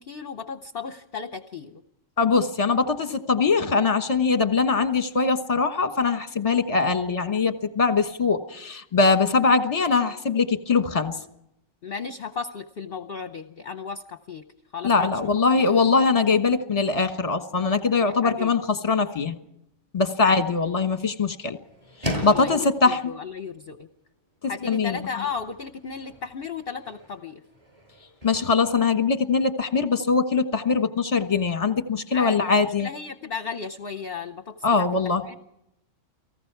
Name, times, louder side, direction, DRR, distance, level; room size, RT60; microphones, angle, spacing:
voice 1, 0.0-1.8 11.8-14.4 14.7-15.1 15.6-15.8 18.0-18.5 20.2-20.4 22.2-23.9 24.5-27.4 32.1-34.9 35.3-35.4, left 5 dB, 50° left, 9 dB, 1.0 m, -35 dB
voice 2, 2.2-11.2 14.8-19.3 19.9-21.6 22.0-23.1 24.6-25.2 28.2-32.9 34.6-35.2, left 4 dB, 25° left, 8 dB, 1.3 m, -22 dB
sound 1, 20.0-29.8, left 1 dB, 25° right, 8.0 m, -40 dB
29.5 x 19.0 x 4.7 m, 0.80 s
omnidirectional pair, 1.4 m